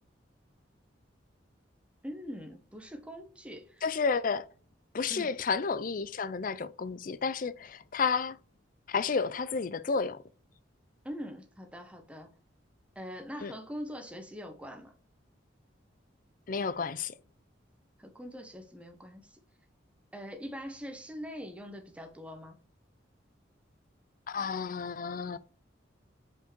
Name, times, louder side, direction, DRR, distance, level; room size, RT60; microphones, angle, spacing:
voice 1, 2.0-3.8 5.1-5.3 11.0-12.3 12.9-14.9 18.0-19.4 20.1-22.5, equal, 5° right, 1.1 m, -43 dB
voice 2, 3.8-4.4 4.9-8.4 8.9-10.2 13.4-13.5 16.5-17.1 24.3-25.4, left 5 dB, 45° left, 0.5 m, -31 dB
5.4 x 4.7 x 4.5 m
head